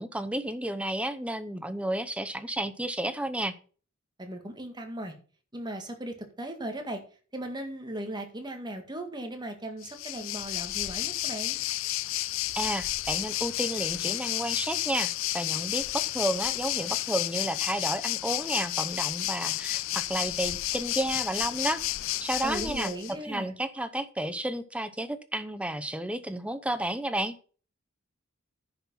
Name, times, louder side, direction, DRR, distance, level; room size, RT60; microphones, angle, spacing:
voice 1, 0.0-3.5 12.6-21.8 22.2-22.9 23.2-27.4, right 1 dB, 5° right, 11 dB, 0.8 m, -32 dB
voice 2, 4.2-5.1 5.5-7.0 7.3-11.6 22.4-23.6, right 1 dB, 20° right, 5 dB, 1.8 m, -37 dB
Waves surf, 9.8-23.1, left 16 dB, 70° left, 0.4 m, -31 dB
10.0 x 6.0 x 5.6 m, 0.39 s
head